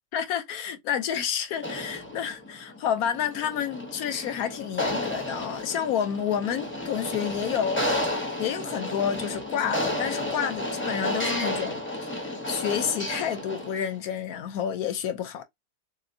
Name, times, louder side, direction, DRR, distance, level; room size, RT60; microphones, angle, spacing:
voice 1, 0.1-7.9 8.1-11.8 12.1-15.4, left 8 dB, 70° left, 1.0 m, -29 dB
sound 1, 1.6-13.9, left 1 dB, 20° left, 0.3 m, -32 dB
3.5 x 2.9 x 2.6 m
omnidirectional pair, 1.8 m